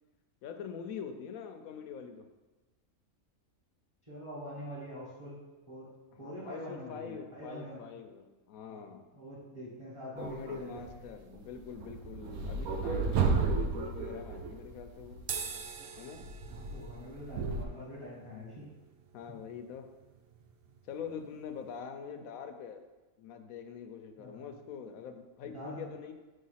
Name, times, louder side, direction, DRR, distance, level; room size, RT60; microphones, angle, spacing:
voice 1, 0.4-2.3 6.1-9.0 10.2-15.2 16.0-16.2 19.1-19.9 20.8-22.8 23.2-26.1, left 7 dB, 80° left, 6 dB, 1.0 m, -44 dB
voice 2, 4.1-5.9 6.2-7.9 8.7-11.0 16.5-18.7 24.2-24.6 25.4-25.9, equal, 20° right, -7 dB, 1.5 m, -45 dB
sound 1, 10.2-11.1 11.3-15.5 16.1-17.7, right 4 dB, 90° right, 1.1 m, -33 dB
sound 2, 15.2-21.8, right 6 dB, 65° right, 0.6 m, -46 dB
5.5 x 3.5 x 5.6 m, 1.2 s
omnidirectional pair, 1.5 m